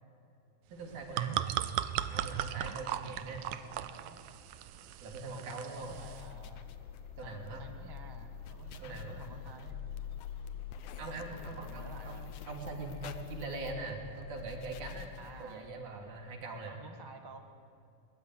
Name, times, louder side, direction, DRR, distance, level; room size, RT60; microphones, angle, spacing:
voice 1, 0.7-1.4 2.1-3.4 3.8-3.9 5.0-6.0 7.2-7.6 8.8-9.3 11.0-15.1 15.4-16.8, right 3 dB, 70° right, 2 dB, 4.5 m, -42 dB
sound 1, 0.8-6.3, right 11 dB, 85° right, 2.3 m, -37 dB
sound 2, 0.9-15.2, equal, 5° right, 7.6 m, -63 dB
voice 2, 3.3-4.2 5.2-6.7 7.2-9.8 11.0-12.3 15.2-15.7 16.7-17.4, right 3 dB, 30° right, 6 dB, 0.4 m, -52 dB
sound 3, 5.8-15.7, left 7 dB, 75° left, 2.4 m, -45 dB
21.5 x 21.5 x 9.5 m, 2.7 s
omnidirectional pair, 3.6 m